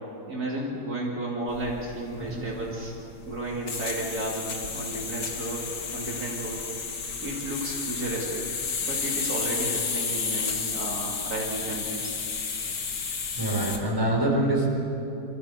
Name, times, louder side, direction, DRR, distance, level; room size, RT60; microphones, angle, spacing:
voice 1, 0.3-2.9 3.3-5.6 5.9-6.6 7.2-8.4 8.8-12.1, right 2 dB, 60° right, -4 dB, 3.0 m, -33 dB
sound 1, 1.5-13.8, left 5 dB, 80° left, 2.3 m, -32 dB
voice 2, 13.4-14.7, right 1 dB, 15° right, -3 dB, 4.5 m, -25 dB
25.0 x 14.5 x 8.3 m, 2.9 s
omnidirectional pair, 1.8 m